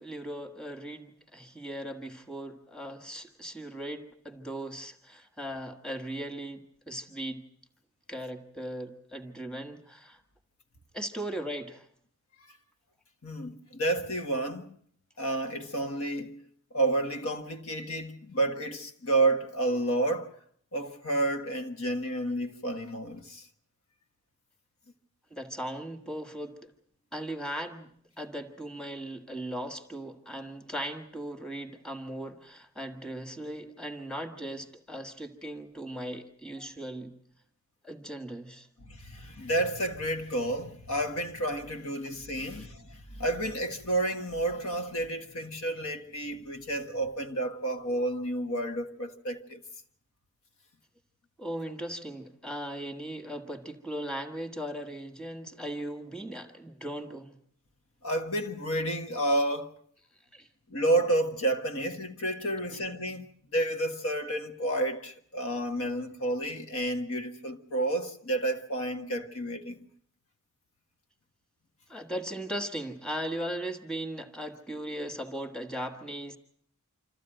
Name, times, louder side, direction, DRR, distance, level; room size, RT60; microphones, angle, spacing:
voice 1, 0.0-7.4 8.1-10.2 10.9-11.9 25.3-26.7 27.1-27.9 28.2-37.1 37.8-38.7 42.5-42.6 51.4-57.4 60.3-60.5 62.7-62.8 71.9-76.4, right 1 dB, 5° left, 1.5 m, -38 dB
voice 2, 13.2-14.7 15.2-20.3 20.7-23.4 38.8-49.6 58.0-59.7 60.7-63.3 63.5-69.9, right 1 dB, 75° left, 1.6 m, -30 dB
26.5 x 14.5 x 9.0 m
head